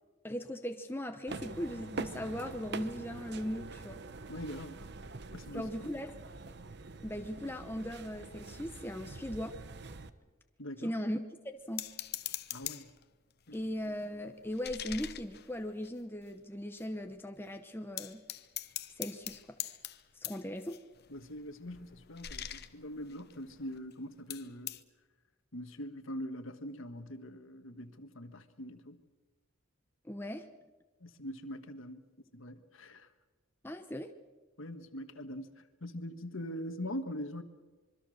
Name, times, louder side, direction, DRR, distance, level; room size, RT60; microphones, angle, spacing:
voice 1, 0.2-4.0 5.5-6.1 7.0-9.6 10.8-11.2 11.4-11.9 13.5-18.2 19.0-19.6 20.2-20.8 30.0-30.5 33.6-34.1, equal, 10° left, 0.9 m, -38 dB
sound 1, 1.3-10.1, right 3 dB, 50° right, 0.9 m, -45 dB
voice 2, 4.3-4.8 5.3-5.9 10.6-10.9 12.5-12.9 13.5-13.6 13.8-13.9 21.1-24.8 25.5-29.0 31.0-32.0 32.3-33.1 34.6-37.4, equal, 65° left, 1.6 m, -43 dB
sound 2, 11.8-13.0 13.5-16.3 16.8-16.9 17.1-17.5 18.0-23.9 24.3-24.8, left 12 dB, 45° left, 0.9 m, -44 dB
25.5 x 23.0 x 6.5 m
head